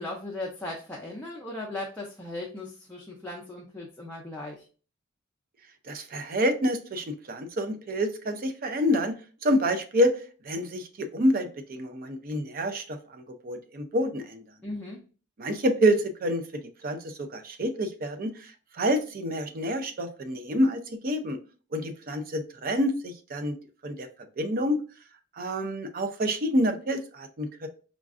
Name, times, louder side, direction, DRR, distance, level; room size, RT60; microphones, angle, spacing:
voice 1, 0.0-4.7 14.6-15.0, left 2 dB, 10° left, -3 dB, 0.5 m, -37 dB
voice 2, 5.9-9.2 9.4-10.1 10.4-14.4 15.4-16.4 16.8-21.4 21.7-23.6 23.8-24.1 24.4-24.8 25.4-27.7, equal, 45° right, 7 dB, 0.5 m, -27 dB
5.0 x 2.4 x 2.4 m, 0.36 s
head